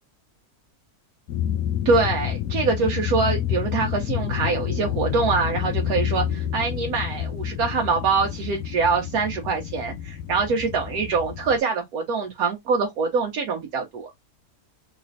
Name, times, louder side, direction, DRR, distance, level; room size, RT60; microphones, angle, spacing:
sound 1, 1.3-11.6, left 10 dB, 80° left, 1.0 m, -28 dB
voice 1, 1.8-14.1, right 4 dB, 90° right, 1.2 m, -24 dB
3.2 x 3.0 x 2.6 m
omnidirectional pair, 1.5 m